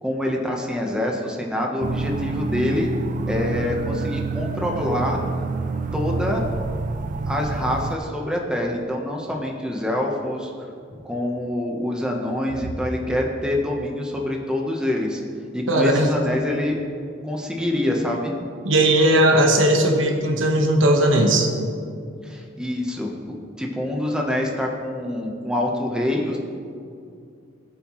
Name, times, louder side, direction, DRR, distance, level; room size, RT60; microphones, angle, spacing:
voice 1, 0.0-5.2 5.9-6.4 7.2-10.5 11.0-15.2 15.5-16.8 17.2-18.3 22.2-23.2 23.6-26.4, left 1 dB, 5° right, 0 dB, 1.0 m, -25 dB
sound 1, 1.8-8.0, right 3 dB, 40° right, 0.4 m, -27 dB
voice 2, 15.7-16.1 18.6-21.5, right 1 dB, 75° right, 2 dB, 1.3 m, -18 dB
18.0 x 7.3 x 3.1 m, 2.4 s
head